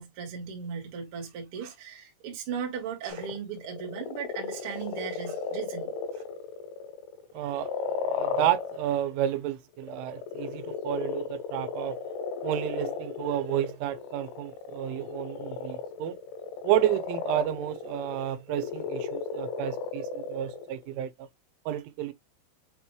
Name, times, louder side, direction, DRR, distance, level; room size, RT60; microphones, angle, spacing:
voice 1, 0.0-6.2, right 7 dB, 65° right, 1.3 m, -37 dB
sound 1, 3.1-9.1 9.7-21.1, left 5 dB, 80° left, 3.5 m, -35 dB
voice 2, 7.3-7.7 8.1-12.0 12.4-16.2 16.6-21.3 21.7-22.1, right 12 dB, 85° right, 3.1 m, -31 dB
7.3 x 3.0 x 2.2 m
omnidirectional pair, 5.5 m